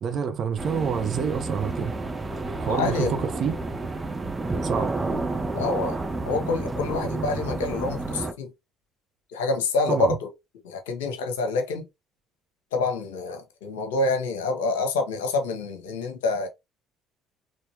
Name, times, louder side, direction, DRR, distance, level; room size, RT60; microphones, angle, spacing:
voice 1, 0.0-1.9 2.6-3.5 4.6-4.9 9.9-10.2, right 7 dB, 50° right, 1.0 m, -27 dB
sound 1, 0.6-8.3, right 3 dB, 20° right, 0.9 m, -30 dB
voice 2, 2.7-3.2 5.5-6.0 6.3-8.5 9.3-10.3 10.6-11.8 12.7-16.5, left 3 dB, 75° left, 1.1 m, -27 dB
5.1 x 3.1 x 2.9 m
figure-of-eight pair, 55°, 0 cm